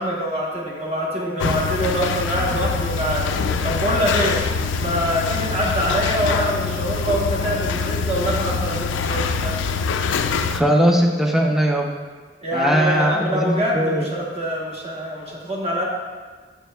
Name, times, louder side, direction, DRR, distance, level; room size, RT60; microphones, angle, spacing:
voice 1, 0.0-3.3 3.6-4.4 4.7-9.5 12.4-15.9, equal, 35° right, -3 dB, 1.1 m, -24 dB
sound 1, 1.4-10.6, left 5 dB, 85° left, 0.3 m, -24 dB
voice 2, 10.5-11.9 12.5-14.1, equal, ahead, 1 dB, 0.5 m, -19 dB
7.1 x 6.3 x 2.3 m, 1.4 s
head